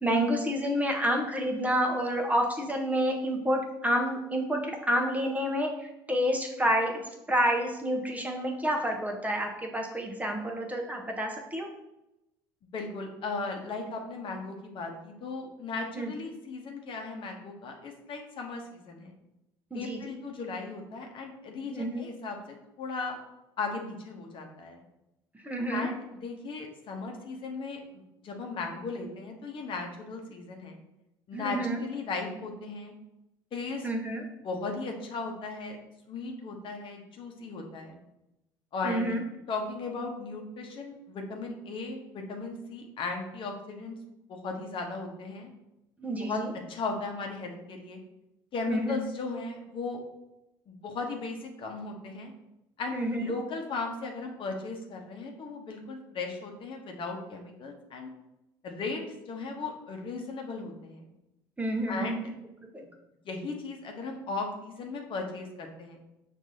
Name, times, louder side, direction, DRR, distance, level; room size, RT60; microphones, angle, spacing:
voice 1, 0.0-11.7 16.0-16.1 19.7-20.0 21.7-22.1 25.4-25.9 31.3-31.8 33.8-34.2 38.8-39.2 46.0-46.5 48.7-49.0 52.9-53.3 61.6-62.2 62.6-62.8, equal, 10° right, 2 dB, 0.8 m, -29 dB
voice 2, 12.7-19.2 19.7-22.4 22.8-23.2 23.6-24.8 25.7-30.8 31.3-32.9 33.5-33.9 34.4-35.8 36.1-38.0 38.7-39.2 39.5-44.0 44.3-45.5 46.2-46.4 46.7-48.0 48.5-50.0 50.7-52.3 52.8-58.1 58.6-61.0 61.9-62.3 63.2-66.0, left 3 dB, 45° left, 2 dB, 0.9 m, -37 dB
6.0 x 2.6 x 2.7 m, 0.91 s
hypercardioid pair, 70°, 12 cm